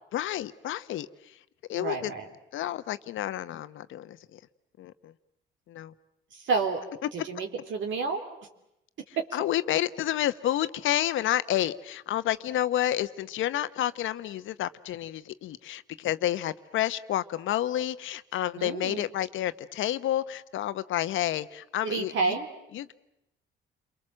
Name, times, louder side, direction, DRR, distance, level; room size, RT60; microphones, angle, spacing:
voice 1, 0.1-1.4 1.7-2.1 2.5-4.4 4.8-5.1 5.7-5.9 9.3-22.4 22.7-22.9, left 12 dB, 80° left, 13 dB, 1.0 m, -30 dB
voice 2, 1.7-2.3 6.3-6.8 7.1-8.2 9.2-9.3 18.6-19.0 21.8-22.5, right 4 dB, 70° right, 3 dB, 3.3 m, -30 dB
29.5 x 23.0 x 7.6 m, 0.85 s
cardioid pair, 90°, 20 cm